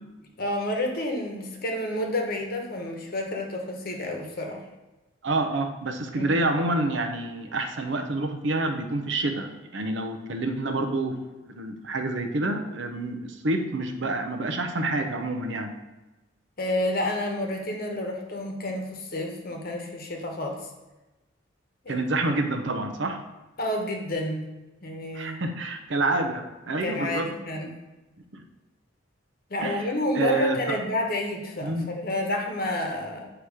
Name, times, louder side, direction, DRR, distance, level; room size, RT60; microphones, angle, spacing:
voice 1, 0.4-4.6 6.1-6.3 16.6-20.7 21.8-21.9 23.6-24.5 24.8-25.4 26.8-27.7 29.5-33.3, left 1 dB, 50° left, 2 dB, 1.0 m, -30 dB
voice 2, 5.2-15.7 21.9-23.2 25.1-27.3 28.3-28.4 29.6-30.8 31.6-31.9, right 2 dB, 65° right, 5 dB, 0.6 m, -28 dB
8.0 x 3.0 x 4.8 m, 1.1 s
head